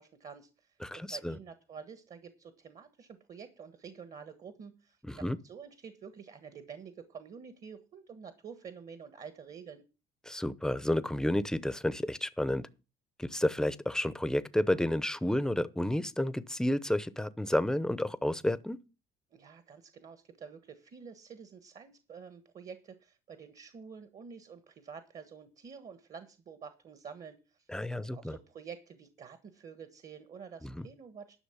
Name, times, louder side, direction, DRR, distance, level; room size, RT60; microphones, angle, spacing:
voice 1, 0.0-9.8 19.3-27.7 27.9-31.4, right 6 dB, 45° right, 1.4 m, -49 dB
voice 2, 0.8-1.4 5.0-5.4 10.2-12.7 13.2-18.8 27.7-28.4 30.6-30.9, left 1 dB, 5° left, 0.7 m, -31 dB
11.5 x 6.0 x 7.2 m
cardioid pair, 110°, 17 cm